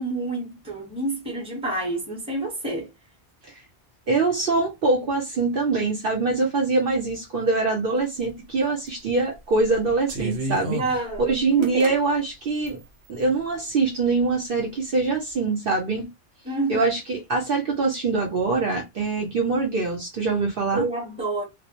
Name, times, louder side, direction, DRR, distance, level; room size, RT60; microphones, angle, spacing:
voice 1, 0.0-2.9 10.8-11.9 16.4-16.9 20.7-21.4, right 2 dB, 5° right, 0.8 m, -28 dB
voice 2, 4.1-10.8 11.3-12.8 13.1-16.1 16.7-20.9, right 3 dB, 60° right, 0.8 m, -24 dB
sound 1, 8.3-8.4 8.9-9.1 9.6-11.9 12.7-13.2, equal, 85° right, 1.0 m, -32 dB
2.2 x 2.0 x 2.8 m
omnidirectional pair, 1.2 m